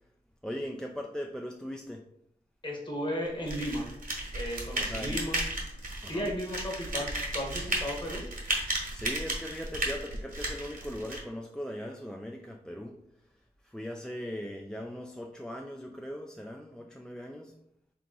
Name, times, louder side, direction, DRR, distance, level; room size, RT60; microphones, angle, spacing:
voice 1, 0.4-2.1 4.8-5.2 6.0-6.3 8.9-13.0 13.6-17.5, equal, 5° left, 2 dB, 0.3 m, -39 dB
voice 2, 2.6-3.9 4.3-5.4 5.7-8.2, equal, 30° left, 0 dB, 1.2 m, -35 dB
sound 1, 3.5-11.2, right 1 dB, 60° right, 1.1 m, -34 dB
3.5 x 2.9 x 3.7 m, 0.76 s
wide cardioid pair, 65°, 16 cm